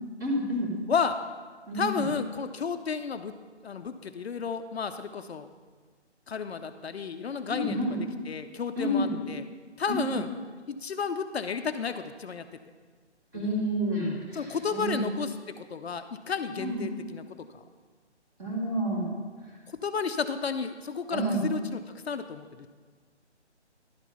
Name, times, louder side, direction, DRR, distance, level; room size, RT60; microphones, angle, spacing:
voice 1, 0.2-0.7 1.7-2.1 7.5-8.0 8.8-9.1 9.9-10.0 13.3-15.0 16.5-16.8 18.4-19.1 21.1-21.4, equal, 15° right, -4 dB, 1.4 m, -29 dB
voice 2, 1.7-3.4 3.6-5.5 6.3-7.8 8.3-9.4 9.8-10.3 10.7-12.5 14.3-17.2 17.5-17.6 19.8-21.8 22.1-22.7, left 6 dB, 65° left, 9 dB, 0.5 m, -32 dB
11.0 x 4.5 x 5.4 m, 1.5 s
figure-of-eight pair, 160°, 35 cm